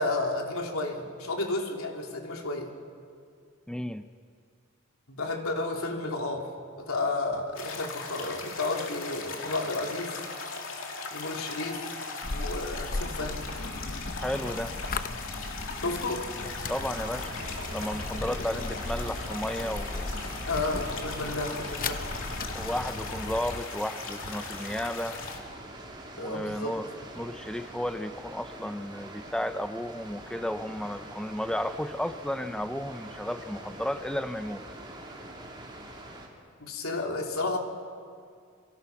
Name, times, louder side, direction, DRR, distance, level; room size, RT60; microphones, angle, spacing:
voice 1, 0.0-2.7 5.1-6.5 6.8-10.2 11.1-11.9 12.3-13.5 15.7-16.3 18.5-18.6 20.5-22.1 26.2-26.8 36.6-37.6, left 2 dB, 85° left, 1 dB, 3.3 m, -32 dB
voice 2, 3.7-4.1 14.2-14.8 16.7-17.3 17.7-20.1 22.5-25.2 26.2-26.9 27.2-34.6, left 1 dB, 5° left, 9 dB, 0.7 m, -33 dB
sound 1, 7.5-25.4, left 4 dB, 70° left, 3.0 m, -39 dB
sound 2, 12.2-23.6, left 3 dB, 45° left, 0.8 m, -37 dB
Water, 16.6-36.3, right 1 dB, 20° right, 3.4 m, -45 dB
29.0 x 24.0 x 6.0 m, 2.2 s
head